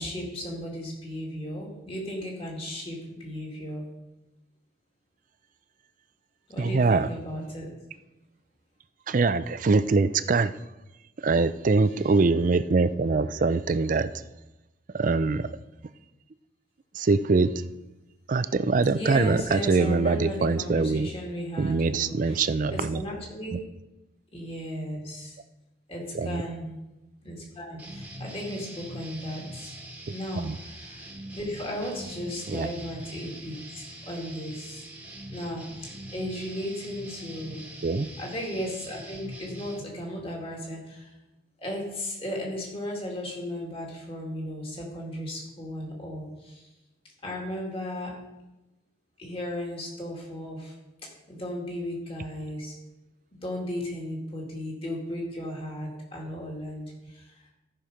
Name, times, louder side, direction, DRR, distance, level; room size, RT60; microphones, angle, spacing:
voice 1, 0.0-3.8 6.5-7.7 18.8-23.6 24.3-25.4 25.9-26.7 27.2-29.7 30.1-31.0 31.3-34.8 35.3-37.6 38.2-41.1 41.6-46.7 47.2-48.1 49.2-50.7 51.3-52.7 53.4-57.4, equal, 30° left, -2 dB, 2.4 m, -35 dB
voice 2, 6.6-7.1 9.1-10.5 11.2-14.1 14.9-15.5 16.9-17.5 18.3-21.1 21.6-23.0 23.5-23.6 26.1-26.4 30.3-30.5 32.5-32.7 37.8-38.1, right 3 dB, 45° right, 14 dB, 0.4 m, -23 dB
sound 1, 27.8-39.8, right 1 dB, 10° right, 1.4 m, -43 dB
14.0 x 6.0 x 5.0 m, 1.0 s
head